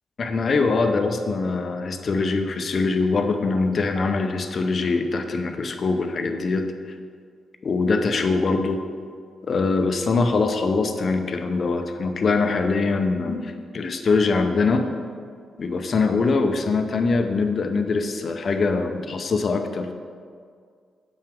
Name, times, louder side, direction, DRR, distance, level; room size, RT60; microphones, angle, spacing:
voice 1, 0.2-6.7 7.6-8.8 9.4-14.9 15.6-19.9, left 4 dB, 55° left, 6 dB, 0.6 m, -23 dB
7.2 x 5.7 x 3.5 m, 2.1 s
hypercardioid pair, 45°, 0 cm